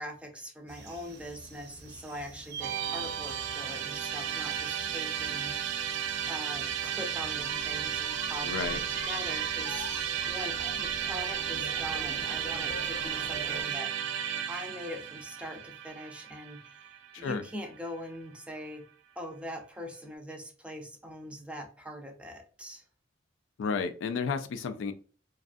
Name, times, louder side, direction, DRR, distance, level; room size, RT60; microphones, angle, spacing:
voice 1, 0.0-6.0 6.3-9.9 10.2-13.9 14.5-18.8 19.2-22.8, equal, 5° right, 3 dB, 0.4 m, -42 dB
sound 1, 0.7-13.8, right 4 dB, 60° right, 0.7 m, -47 dB
Musical instrument, 2.6-17.8, right 9 dB, 90° right, 0.4 m, -34 dB
sound 2, 7.4-13.6, left 1 dB, 50° left, 0.7 m, -44 dB
voice 2, 8.4-8.8 17.1-17.4 23.6-24.9, left 5 dB, 80° left, 9 dB, 0.3 m, -32 dB
2.5 x 2.3 x 2.4 m, 0.38 s
head